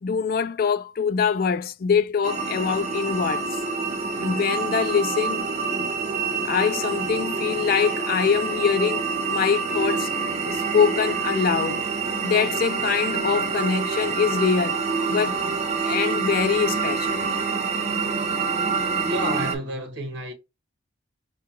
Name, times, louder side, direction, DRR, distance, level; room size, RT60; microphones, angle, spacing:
voice 1, 0.0-3.6 4.2-5.5 5.8-5.9 6.4-10.1 10.4-11.9 12.2-14.8 15.1-17.3, left 6 dB, 45° left, 0.3 m, -24 dB
sound 1, 2.2-19.6, right 5 dB, 35° right, 0.6 m, -27 dB
voice 2, 19.1-20.3, equal, 60° right, 1.3 m, -30 dB
4.5 x 2.5 x 2.9 m
head